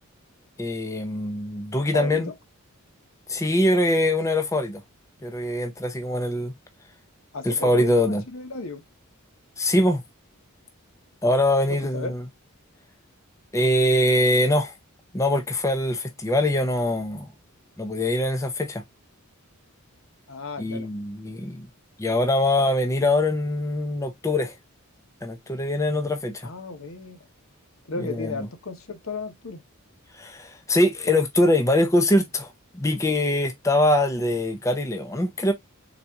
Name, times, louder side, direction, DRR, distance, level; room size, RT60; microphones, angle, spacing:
voice 1, 0.6-2.3 3.3-4.8 5.2-6.5 7.4-8.2 9.6-10.0 11.2-12.2 13.5-14.7 15.1-17.3 17.8-18.8 20.6-21.7 22.0-24.5 25.2-26.5 28.0-28.5 30.1-35.5, left 1 dB, 15° left, 0.5 m, -23 dB
voice 2, 1.9-2.3 7.3-8.8 11.7-12.1 20.3-20.9 26.4-27.3 27.9-29.6, left 3 dB, 65° left, 0.9 m, -34 dB
4.1 x 2.8 x 3.4 m
head